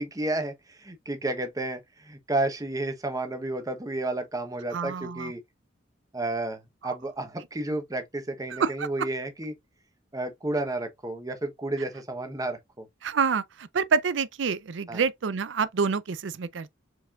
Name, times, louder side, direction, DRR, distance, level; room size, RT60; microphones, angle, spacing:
voice 1, 0.0-5.4 6.1-9.5 10.1-12.9 14.9-15.0, right 2 dB, 20° right, 0.9 m, -31 dB
voice 2, 4.7-5.3 6.8-7.0 8.5-8.9 13.0-16.7, right 5 dB, 70° right, 0.5 m, -27 dB
4.8 x 4.2 x 2.3 m
head